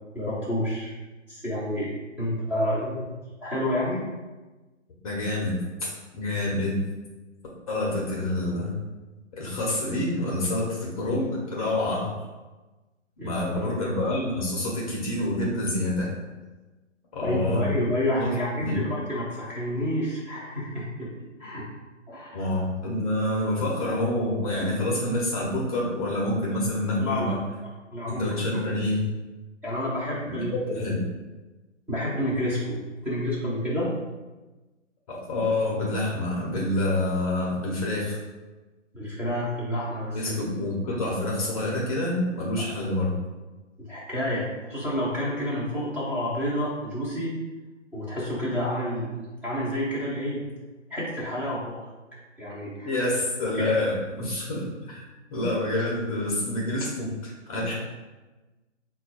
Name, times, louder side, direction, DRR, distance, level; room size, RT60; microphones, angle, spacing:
voice 1, 0.1-0.9 1.3-1.9 2.2-3.1 3.4-4.1 13.2-13.7 17.2-21.1 21.4-21.7 22.1-22.4 27.0-27.3 27.9-28.2 28.5-28.6 29.6-30.8 31.9-33.9 38.9-40.4 43.9-47.3 47.9-50.4 50.9-51.8 52.4-52.9 53.6-53.7, equal, 5° right, -10 dB, 0.6 m, -29 dB
voice 2, 5.0-6.8 7.7-8.8 9.3-12.3 13.2-16.1 17.1-17.6 18.2-18.3 18.6-18.8 22.3-27.4 28.1-29.1 30.3-31.0 35.1-38.2 40.1-43.1 52.8-55.0 55.3-57.7, left 1 dB, 30° left, -4 dB, 0.7 m, -27 dB
4.1 x 2.3 x 4.2 m, 1.2 s
figure-of-eight pair, 130°, 38 cm